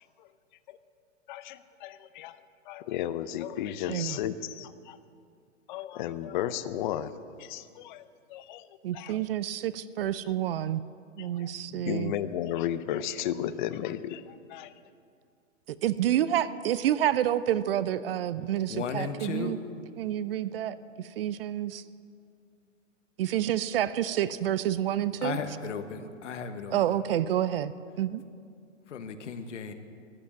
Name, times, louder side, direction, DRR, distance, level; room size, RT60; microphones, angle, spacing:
voice 1, 1.3-2.4 2.7-5.0 5.7-7.1 7.4-8.7 8.9-9.2 11.2-14.7, left 11 dB, 40° left, 14 dB, 0.6 m, -34 dB
voice 2, 8.8-10.8 11.2-12.1 15.8-19.6 20.0-20.8 21.2-21.8 23.2-25.4 26.7-27.7 28.0-28.2, right 11 dB, 50° right, 16 dB, 0.5 m, -28 dB
voice 3, 18.7-19.6 25.2-27.0 28.9-29.7, left 5 dB, 70° left, 8 dB, 1.3 m, -35 dB
14.0 x 10.5 x 7.4 m, 2.3 s
hypercardioid pair, 130°, 38 cm